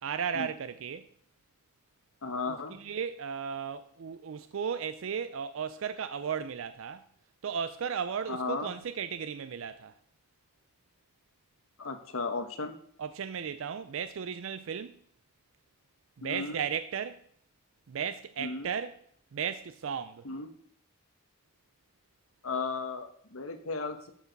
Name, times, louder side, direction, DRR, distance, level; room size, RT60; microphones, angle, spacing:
voice 1, 0.0-1.1 2.5-7.0 7.4-9.9 13.0-15.0 16.2-17.2 17.9-19.0 19.3-20.3, right 7 dB, 70° right, 0.4 m, -35 dB
voice 2, 2.2-2.7 8.3-8.7 11.8-12.8 16.2-16.6 18.4-18.7 20.2-20.5 22.4-24.1, left 4 dB, 80° left, 1.2 m, -35 dB
13.0 x 4.9 x 5.2 m
head